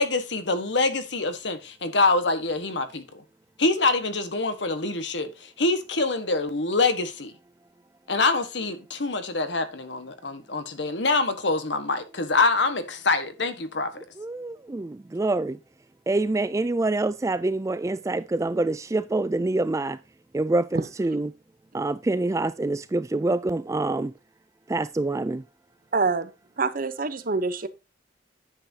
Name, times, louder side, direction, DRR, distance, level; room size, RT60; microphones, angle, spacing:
voice 1, 0.0-3.0 3.6-7.3 8.1-14.0, left 3 dB, 70° left, 1.5 m, -25 dB
voice 2, 14.2-15.6 16.1-20.0 20.3-21.3 21.7-24.1 24.7-25.4, right 2 dB, 15° right, 0.3 m, -26 dB
voice 3, 25.9-26.3 26.6-27.7, right 4 dB, 50° right, 0.9 m, -25 dB
10.0 x 7.8 x 2.8 m
head